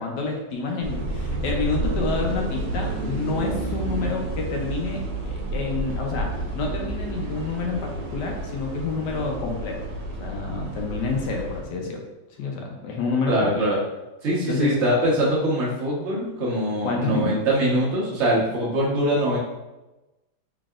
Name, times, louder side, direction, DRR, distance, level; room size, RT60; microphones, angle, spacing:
voice 1, 0.0-6.3 6.5-9.8 10.2-12.0 12.4-13.6 14.5-14.7 16.8-17.4, left 3 dB, 75° left, 1 dB, 1.2 m, -28 dB
sound 1, 0.8-11.6, right 2 dB, 75° right, 1.4 m, -30 dB
voice 2, 13.3-13.8 14.2-19.4, right 1 dB, 45° right, -6 dB, 1.2 m, -23 dB
3.9 x 3.6 x 2.4 m, 1.1 s
omnidirectional pair, 1.9 m